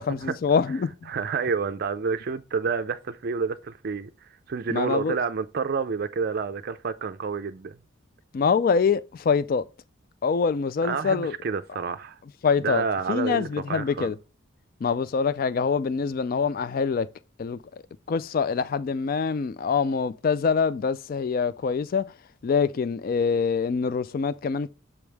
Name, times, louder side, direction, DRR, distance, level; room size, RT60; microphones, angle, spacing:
voice 1, 0.0-1.1 4.7-5.2 8.3-9.6 10.2-11.4 12.4-14.2 14.8-17.1 17.4-17.8 18.1-22.0 22.4-24.7, left 5 dB, 45° left, 0.3 m, -25 dB
voice 2, 1.1-7.8 10.8-12.2 12.6-14.1, right 5 dB, 50° right, 0.4 m, -29 dB
7.1 x 5.1 x 3.3 m
head